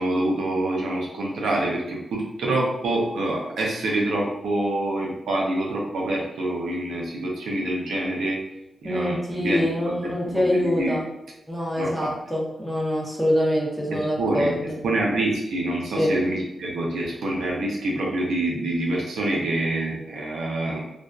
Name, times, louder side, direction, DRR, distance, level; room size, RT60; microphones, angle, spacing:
voice 1, 0.0-8.4 8.8-9.9 10.2-10.4 10.8-11.0 11.8-11.9 13.9-14.5 14.8-20.8, right 1 dB, 85° right, -2 dB, 0.5 m, -26 dB
voice 2, 8.8-11.1 11.5-14.8 16.0-16.2, equal, ahead, -3 dB, 0.8 m, -24 dB
2.5 x 2.2 x 2.2 m, 0.88 s
cardioid pair, 60°, 0 cm